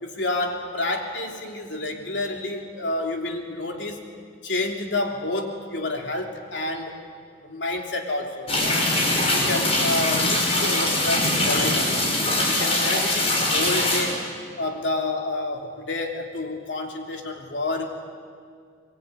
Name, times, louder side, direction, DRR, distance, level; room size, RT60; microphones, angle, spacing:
voice 1, 0.0-4.0 4.4-7.0 7.4-8.5 9.3-12.0 12.5-14.2 14.6-18.0, left 2 dB, 70° left, 2 dB, 3.2 m, -29 dB
sound 1, 8.5-14.0, left 1 dB, 35° left, 5.9 m, -22 dB
24.0 x 23.0 x 9.4 m, 2.1 s
head